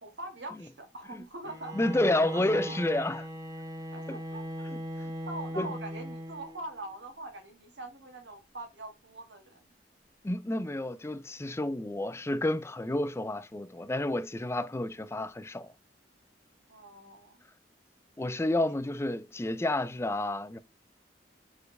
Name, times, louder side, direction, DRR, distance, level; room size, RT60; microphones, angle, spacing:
voice 1, 0.0-1.8 2.2-2.8 3.9-4.7 5.3-9.6 16.7-17.4 18.5-18.6, right 1 dB, 80° right, 1.9 m, -43 dB
Bowed string instrument, 1.4-6.8, right 1 dB, 20° right, 1.0 m, -39 dB
voice 2, 1.7-3.2 4.1-4.2 5.6-5.7 10.2-15.7 18.2-20.6, left 1 dB, 15° left, 0.4 m, -30 dB
6.8 x 4.5 x 3.2 m
head